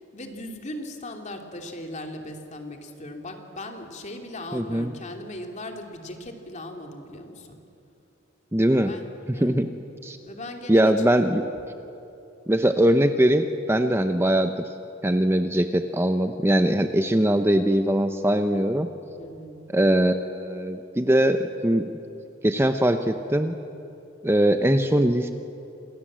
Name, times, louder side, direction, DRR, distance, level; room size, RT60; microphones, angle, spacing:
voice 1, 0.1-7.6 8.8-9.0 9.3-9.7 10.2-10.9 19.2-19.7, left 1 dB, 35° left, 3 dB, 2.9 m, -38 dB
voice 2, 4.5-4.9 8.5-8.9 9.3-9.7 10.0-10.2 10.7-11.4 12.5-14.7 15.0-18.9 19.7-21.9 22.4-23.6 24.2-25.3, right 1 dB, 10° right, 7 dB, 0.8 m, -21 dB
28.5 x 27.0 x 7.6 m, 2.8 s
head